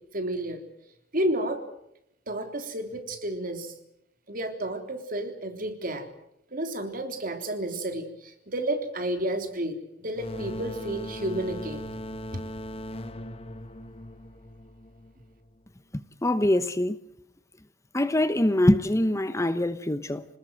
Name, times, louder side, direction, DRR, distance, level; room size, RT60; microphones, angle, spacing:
voice 1, 0.1-0.6 1.1-1.6 2.3-3.7 4.3-6.1 6.5-11.9 12.3-12.4, right 1 dB, 50° right, 3.6 m, -31 dB
sound 1, 10.2-15.6, equal, 30° left, 1.3 m, -39 dB
voice 2, 16.2-17.0 17.9-20.2, left 1 dB, 15° left, 0.9 m, -23 dB
27.0 x 20.0 x 7.7 m
head